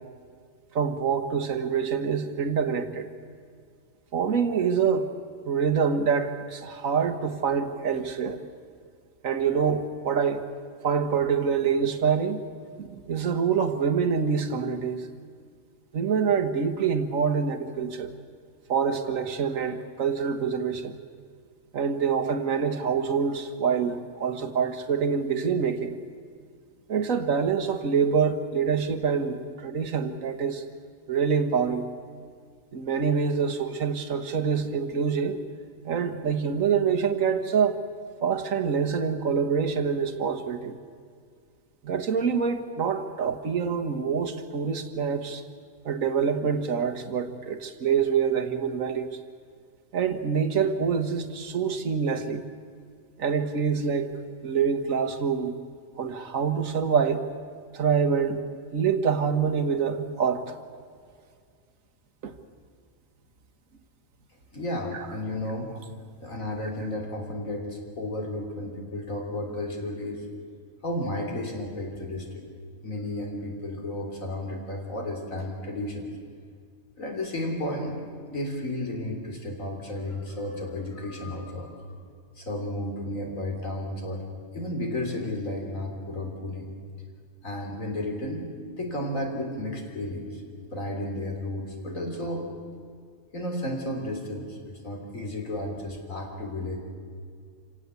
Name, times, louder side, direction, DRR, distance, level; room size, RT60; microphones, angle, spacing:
voice 1, 0.7-3.1 4.1-5.1 5.4-8.4 9.2-10.4 10.8-12.4 12.8-15.1 15.9-18.1 18.7-21.0 21.7-25.9 26.9-30.6 31.1-31.8 32.7-35.4 35.8-37.8 38.2-40.8 41.8-45.4 45.8-49.2 49.9-52.4 53.2-55.5 56.0-57.2 57.7-58.4 58.7-60.4 62.2-62.3, right 6 dB, 75° right, 9 dB, 1.8 m, -26 dB
voice 2, 64.5-65.7 66.2-70.3 70.8-72.4 72.8-76.1 77.0-78.0 78.3-81.9 82.4-84.3 84.5-86.7 87.4-88.4 88.8-90.4 90.7-92.5 93.3-96.8, left 1 dB, 70° left, 2 dB, 3.9 m, -33 dB
27.0 x 17.5 x 8.2 m, 2.1 s
omnidirectional pair, 1.4 m